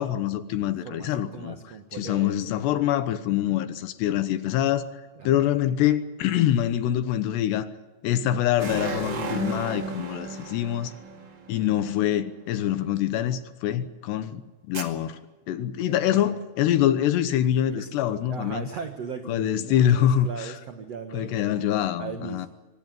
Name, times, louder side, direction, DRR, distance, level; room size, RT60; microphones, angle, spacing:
voice 1, 0.0-1.6 1.9-4.9 5.2-7.7 8.0-10.9 11.5-14.4 14.7-15.2 15.5-18.6 19.3-20.5 21.1-22.5, left 11 dB, 75° left, 3.0 m, -25 dB
voice 2, 0.8-2.4 5.2-5.3 15.9-16.2 17.7-17.9 18.3-21.4 22.0-22.5, right 6 dB, 75° right, 1.5 m, -38 dB
sound 1, 8.6-12.1 14.7-14.8, right 3 dB, 40° right, 1.6 m, -34 dB
24.0 x 18.5 x 9.4 m
omnidirectional pair, 5.3 m